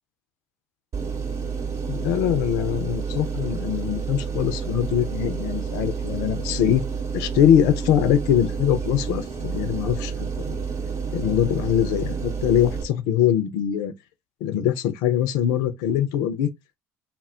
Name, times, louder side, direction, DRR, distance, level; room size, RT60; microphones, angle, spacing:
sound 1, 0.9-12.8, right 6 dB, 40° right, 0.7 m, -29 dB
voice 1, 1.9-6.8 7.1-10.5 11.1-13.9 14.4-16.5, left 10 dB, 60° left, 0.4 m, -22 dB
2.1 x 2.0 x 3.5 m
figure-of-eight pair, 60°, 8 cm